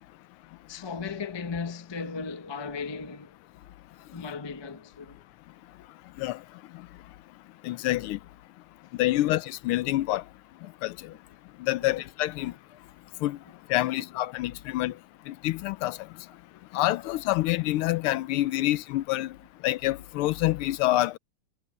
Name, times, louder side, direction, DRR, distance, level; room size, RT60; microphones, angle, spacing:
voice 1, 0.7-3.3 4.1-5.2 8.0-8.1 9.1-9.3 11.8-12.0 12.4-12.5, left 5 dB, 35° left, 0.4 m, -36 dB
voice 2, 7.6-8.2 9.0-10.2 10.8-10.9 11.6-12.5 13.2-13.4 13.7-14.9 15.3-16.0 16.7-19.3 19.6-21.2, left 16 dB, 80° left, 1.5 m, -27 dB
omnidirectional pair, 2.4 m